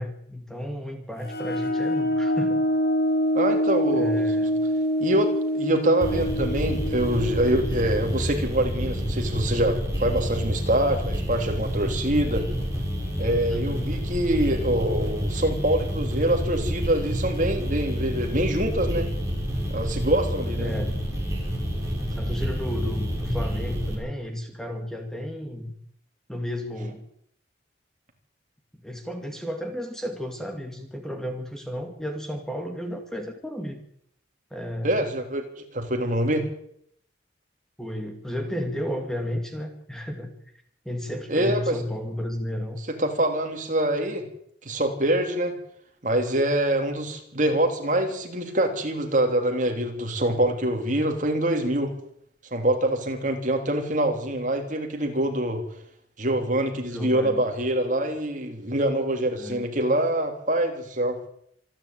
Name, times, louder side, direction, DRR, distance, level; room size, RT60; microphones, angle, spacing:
voice 1, 0.0-2.6 3.9-4.6 13.5-13.9 20.6-21.0 22.1-25.7 26.3-27.0 28.8-33.8 34.5-35.1 37.8-40.3 40.8-42.8 56.8-57.4 59.4-59.7, equal, 5° left, 4 dB, 2.3 m, -33 dB
sound 1, 1.2-8.7, equal, 55° left, 3.5 m, -26 dB
voice 2, 3.3-4.4 5.0-12.4 13.2-19.1 19.7-20.7 34.8-36.5 41.3-41.7 43.0-44.2 44.6-45.5 46.0-51.9 52.5-55.6 56.2-61.2, right 1 dB, 40° right, 4 dB, 3.5 m, -25 dB
sound 2, 6.0-23.9, equal, 15° right, 6.5 m, -28 dB
26.5 x 11.0 x 9.0 m, 0.70 s
head